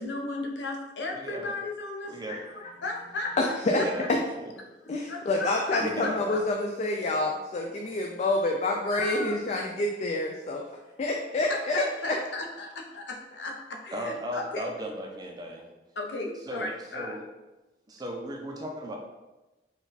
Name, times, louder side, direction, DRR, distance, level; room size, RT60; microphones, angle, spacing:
voice 1, 0.0-2.5 2.8-3.9 5.1-6.4 8.9-9.4 11.5-14.7 16.0-17.2, left 2 dB, 80° left, 2 dB, 0.6 m, -36 dB
voice 2, 1.1-1.5 2.1-2.5 3.7-4.2 4.4-4.5 5.8-6.3 13.9-15.7 16.5-17.2 17.9-19.0, equal, 20° right, 1 dB, 0.5 m, -36 dB
voice 3, 3.4-4.2 4.9-10.6 11.0-12.2, left 2 dB, 40° left, 1 dB, 0.3 m, -27 dB
4.1 x 2.3 x 4.0 m, 1.1 s
head